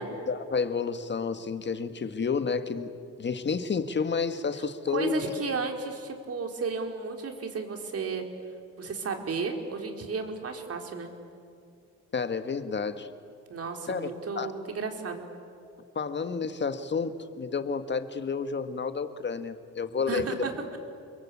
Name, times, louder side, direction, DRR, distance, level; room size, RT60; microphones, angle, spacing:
voice 1, 0.0-5.2 12.1-13.1 13.9-14.5 16.0-20.5, left 5 dB, 35° left, 9 dB, 1.8 m, -30 dB
voice 2, 4.9-8.2 8.8-11.1 13.5-15.3 20.0-20.8, right 4 dB, 50° right, 4 dB, 4.2 m, -33 dB
30.0 x 22.5 x 8.5 m, 2.4 s
cardioid pair, 90°, 30 cm